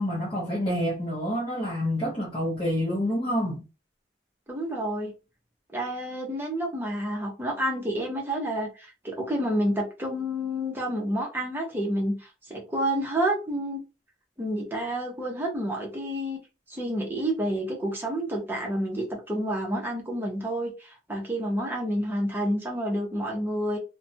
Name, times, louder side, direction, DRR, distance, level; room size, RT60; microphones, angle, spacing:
voice 1, 0.0-3.6, equal, 30° left, 0.7 m, -28 dB
voice 2, 4.5-5.1 5.7-13.8 14.4-16.4 16.7-23.8, equal, 10° right, 0.7 m, -29 dB
2.5 x 2.2 x 2.6 m
head